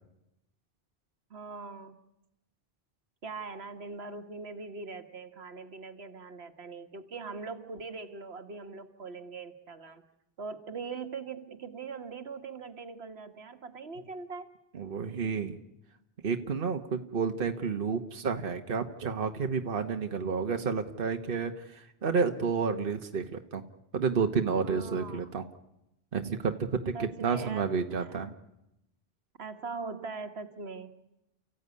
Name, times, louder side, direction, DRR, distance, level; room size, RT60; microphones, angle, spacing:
voice 1, 1.3-2.0 3.2-10.0 10.4-14.5 24.6-25.3 26.9-27.7 28.0-28.3 29.4-30.9, right 4 dB, 80° right, 9 dB, 1.7 m, -41 dB
voice 2, 14.7-15.6 16.2-23.6 23.9-25.4 26.1-28.3, right 5 dB, 60° right, 6 dB, 1.3 m, -30 dB
29.5 x 14.5 x 9.6 m, 0.88 s
omnidirectional pair, 1.1 m